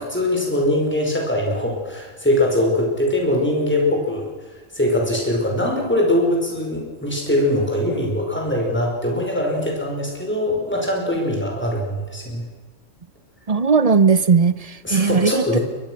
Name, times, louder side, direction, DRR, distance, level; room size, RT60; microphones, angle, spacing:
voice 1, 0.0-12.4 14.8-15.6, left 1 dB, 10° left, 0 dB, 5.2 m, -22 dB
voice 2, 13.5-15.6, right 5 dB, 35° right, 15 dB, 0.8 m, -17 dB
23.5 x 21.0 x 6.4 m, 1.4 s
omnidirectional pair, 1.3 m